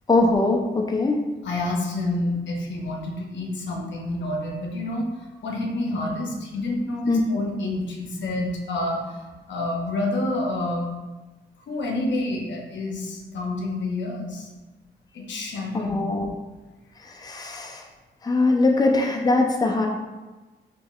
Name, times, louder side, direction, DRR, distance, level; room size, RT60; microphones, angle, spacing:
voice 1, 0.1-1.2 7.1-7.2 15.7-16.3 17.0-17.9 18.2-19.9, left 2 dB, 20° left, 1 dB, 0.5 m, -22 dB
voice 2, 1.4-5.1 5.4-10.9 11.7-14.5 15.1-16.2, left 2 dB, 80° left, 0 dB, 0.7 m, -28 dB
4.5 x 3.0 x 2.4 m, 1.2 s
cardioid pair, 70°, 19 cm